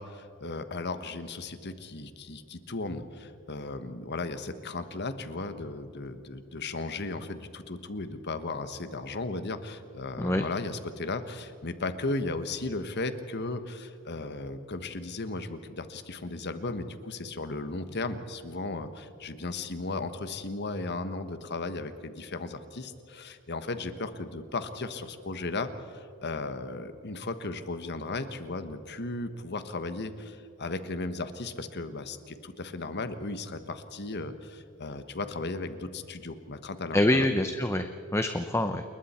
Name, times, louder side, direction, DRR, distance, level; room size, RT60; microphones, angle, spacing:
voice 1, 0.0-37.3, left 3 dB, 50° left, 10 dB, 1.3 m, -36 dB
voice 2, 36.9-38.8, left 1 dB, 10° left, 7 dB, 0.7 m, -26 dB
28.5 x 21.5 x 4.4 m, 2.6 s
head